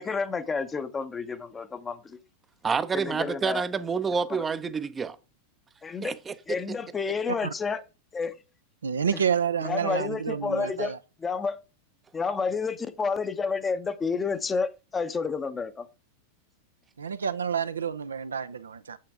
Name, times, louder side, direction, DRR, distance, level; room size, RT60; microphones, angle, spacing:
voice 1, 0.0-2.2 2.9-3.6 4.3-4.4 5.8-6.1 6.5-7.8 8.1-8.4 9.6-10.9 11.2-11.6 12.1-15.9, left 5 dB, 15° left, 0.8 m, -30 dB
voice 2, 2.6-5.2 6.0-6.6, right 5 dB, 15° right, 0.7 m, -28 dB
voice 3, 8.8-11.0 17.0-19.0, right 7 dB, 70° right, 0.5 m, -29 dB
8.5 x 7.6 x 3.6 m
figure-of-eight pair, 90°, 0 cm